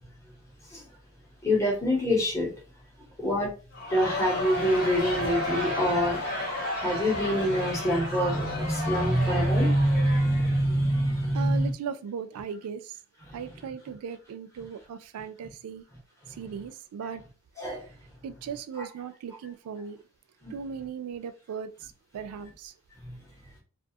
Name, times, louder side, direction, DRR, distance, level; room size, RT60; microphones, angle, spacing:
voice 1, 1.4-2.5 3.2-3.5 3.9-6.4 6.7-11.7 13.3-13.5 17.6-17.8 20.4-20.5, equal, 15° left, 0.8 m, -25 dB
Crowd, 3.7-11.0, left 1 dB, 40° left, 0.9 m, -33 dB
voice 2, 11.3-12.9 13.3-15.8 16.4-17.2 18.2-20.0 20.5-21.7 22.1-22.7, right 6 dB, 80° right, 0.3 m, -37 dB
2.4 x 2.2 x 2.7 m
head